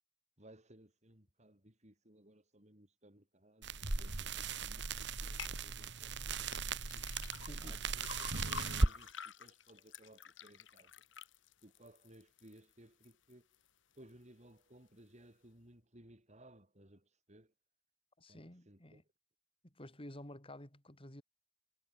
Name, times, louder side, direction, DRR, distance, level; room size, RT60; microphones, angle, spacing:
voice 1, 0.4-3.7 4.0-7.0 7.5-10.9 11.6-13.5 13.9-17.5 18.3-19.0, right 1 dB, 40° right, 6.4 m, -61 dB
sound 1, 3.6-9.0, right 3 dB, 65° right, 2.3 m, -37 dB
sound 2, 5.4-5.6 6.5-12.6 13.0-13.6 14.0-14.1, left 6 dB, 85° left, 1.9 m, -49 dB
voice 2, 7.5-7.8 18.2-19.0 19.6-21.2, left 1 dB, 30° left, 5.2 m, -51 dB
head